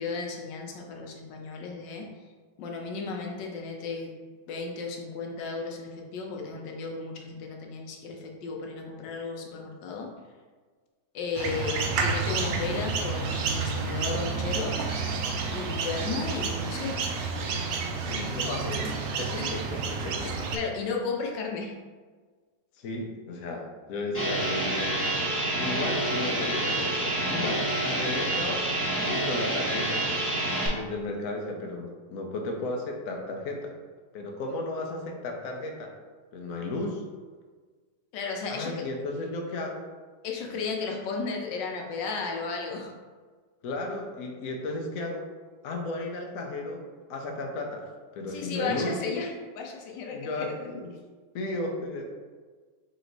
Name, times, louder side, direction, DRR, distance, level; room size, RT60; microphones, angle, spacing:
voice 1, 0.0-2.1 2.6-4.1 4.5-10.1 11.1-14.7 15.5-17.0 19.4-19.5 20.5-21.7 38.1-38.7 40.2-42.9 48.3-50.7, left 4 dB, 85° left, 1 dB, 1.3 m, -34 dB
sound 1, 11.3-20.6, right 4 dB, 70° right, 0.9 m, -30 dB
voice 2, 18.0-18.9 19.2-20.4 22.8-25.1 25.6-28.7 29.1-30.0 30.7-33.8 34.1-35.9 36.3-37.0 38.5-39.9 40.4-40.5 43.6-45.2 45.6-46.8 47.1-47.9 48.1-48.9 50.1-50.9 51.3-52.0, left 2 dB, 60° left, 1 dB, 0.9 m, -34 dB
sound 2, 24.1-30.7, right 1 dB, 10° left, 1.0 m, -28 dB
4.3 x 3.0 x 3.9 m, 1.5 s
omnidirectional pair, 1.9 m